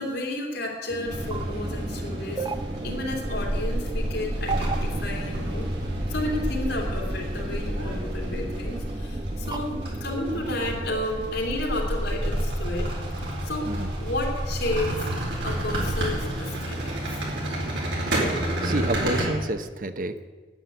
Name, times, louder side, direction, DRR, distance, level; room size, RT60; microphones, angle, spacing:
voice 1, 0.0-2.5 2.8-5.7 6.1-13.2 13.4-13.7 14.0-15.1 15.4-17.2, left 1 dB, 80° left, -1 dB, 2.8 m, -32 dB
sound 1, 0.9-11.0, right 3 dB, 25° right, 0.6 m, -36 dB
sound 2, 1.1-19.3, right 1 dB, 85° right, 4.4 m, -30 dB
voice 2, 2.8-3.2 13.6-13.9 18.6-20.2, right 1 dB, 50° right, 9 dB, 0.8 m, -30 dB
9.8 x 9.7 x 7.9 m, 1.3 s
head